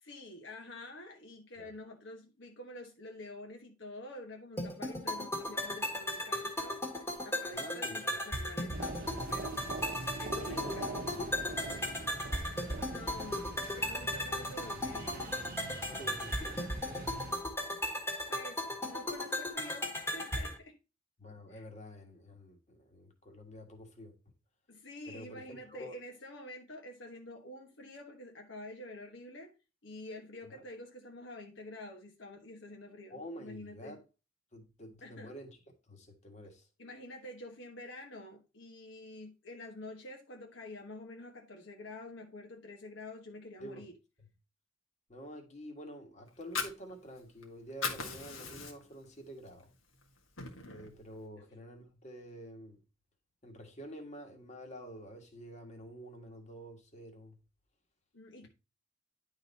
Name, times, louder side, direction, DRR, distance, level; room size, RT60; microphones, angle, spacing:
voice 1, 0.0-9.9 10.2-11.0 11.3-11.5 12.8-15.4 17.9-20.8 21.5-21.6 24.7-29.5 29.8-34.0 35.0-35.4 36.8-43.9 51.3-51.4 58.1-58.5, left 1 dB, 65° left, 1.3 m, -48 dB
sound 1, 4.6-20.6, left 1 dB, 15° left, 1.6 m, -36 dB
voice 2, 7.5-8.1 8.4-8.5 10.3-11.4 14.3-14.4 15.9-16.7 21.2-24.1 25.0-26.0 30.5-30.6 33.1-34.0 34.5-35.6 35.9-36.7 43.6-43.8 45.1-49.7 50.7-52.8 53.4-57.4, equal, 35° left, 1.7 m, -48 dB
sound 2, 8.7-17.4, right 3 dB, 45° right, 0.8 m, -43 dB
Fire, 46.3-47.4 47.7-49.0 49.5-49.6 50.0-51.0, left 5 dB, 85° left, 1.8 m, -38 dB
10.5 x 4.0 x 4.1 m
head